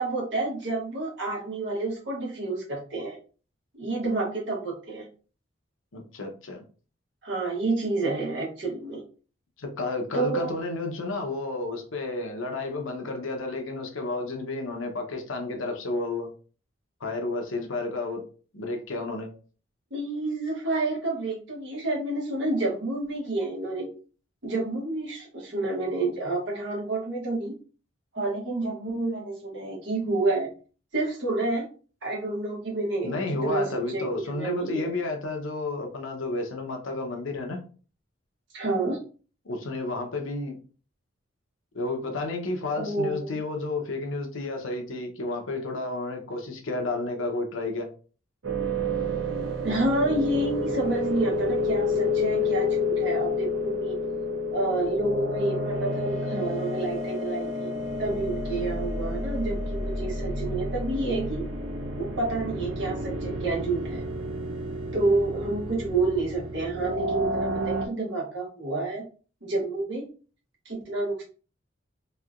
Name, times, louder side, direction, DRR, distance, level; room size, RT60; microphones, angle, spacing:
voice 1, 0.0-3.2 3.7-5.1 7.2-9.0 10.1-10.5 19.9-23.9 24.4-27.5 28.1-30.5 30.9-31.7 32.0-33.1 33.4-34.9 38.5-39.0 42.7-43.3 49.6-54.0 54.5-57.7 58.0-61.4 62.0-64.0 64.9-69.0 69.4-70.1 70.6-71.2, right 2 dB, 65° right, 1.2 m, -29 dB
voice 2, 5.9-6.6 9.6-16.3 17.0-18.2 18.5-19.3 33.0-37.6 39.4-40.6 41.7-47.9, left 2 dB, 90° left, 0.8 m, -31 dB
sound 1, 48.4-67.9, left 1 dB, 90° right, 0.7 m, -30 dB
3.2 x 2.8 x 2.4 m
head